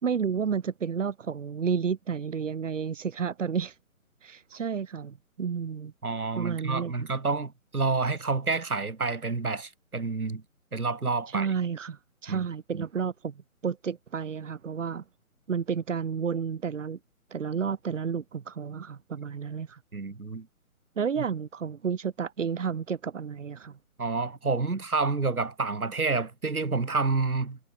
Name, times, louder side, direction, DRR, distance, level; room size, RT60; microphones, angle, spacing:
voice 1, 0.0-3.7 4.2-5.9 6.4-7.1 11.3-13.3 13.6-15.0 15.5-17.0 17.3-19.8 21.0-23.7, right 6 dB, 60° right, 4.4 m, -31 dB
voice 2, 6.0-10.4 10.7-11.5 12.3-12.5 12.7-12.8 19.9-20.5 24.0-27.6, right 4 dB, 85° right, 5.1 m, -29 dB
figure-of-eight pair, 150°, 43 cm